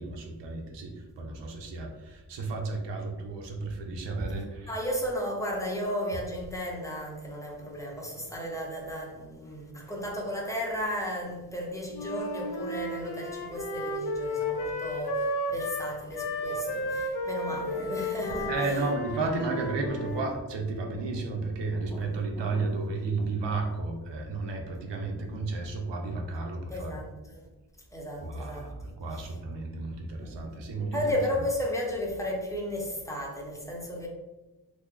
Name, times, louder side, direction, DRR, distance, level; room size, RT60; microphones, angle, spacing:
voice 1, 0.0-4.7 18.5-27.0 28.2-31.1, right 3 dB, 85° right, 2 dB, 0.7 m, -33 dB
voice 2, 4.7-18.9 20.9-21.0 21.7-22.8 23.2-23.3 26.7-27.5 27.9-28.7 29.1-29.3 30.2-30.6 30.9-34.1, equal, 10° left, -2 dB, 0.6 m, -34 dB
Wind instrument woodwind instrument, 11.9-20.3, left 1 dB, 65° left, 0.6 m, -33 dB
3.1 x 2.0 x 3.5 m, 1.1 s
wide cardioid pair, 120°, 42 cm